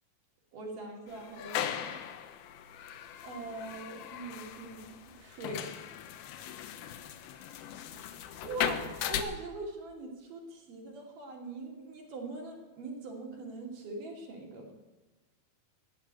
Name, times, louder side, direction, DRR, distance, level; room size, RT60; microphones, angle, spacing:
voice 1, 0.5-1.9 3.2-5.8 8.4-14.7, right 2 dB, 55° right, 0 dB, 4.1 m, -42 dB
sound 1, 1.1-9.2, left 10 dB, 75° left, 2.7 m, -38 dB
15.5 x 6.6 x 9.7 m, 1.2 s
omnidirectional pair, 4.6 m